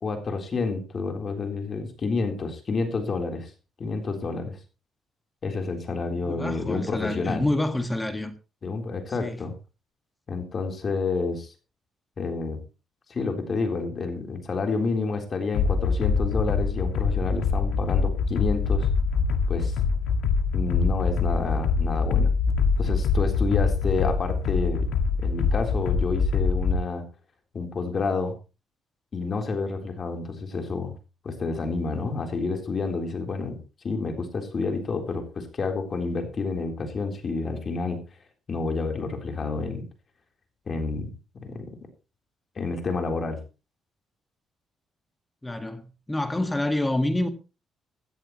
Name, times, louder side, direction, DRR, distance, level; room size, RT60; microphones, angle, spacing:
voice 1, 0.0-3.5 3.8-4.6 5.4-7.4 8.6-9.6 10.3-11.5 12.2-12.6 13.1-18.9 19.5-19.8 20.5-22.3 22.8-24.9 25.2-27.1 27.5-28.4 29.1-30.9 31.2-33.6 33.8-38.0 38.5-39.9 40.7-41.1 41.4-41.7 42.6-43.4, left 4 dB, 45° left, 3.8 m, -29 dB
voice 2, 6.2-8.3 9.2-9.4 45.4-47.3, left 1 dB, 15° left, 1.8 m, -27 dB
sound 1, 15.5-26.8, left 5 dB, 90° left, 1.8 m, -24 dB
16.5 x 13.5 x 3.1 m
cardioid pair, 90°, 0 cm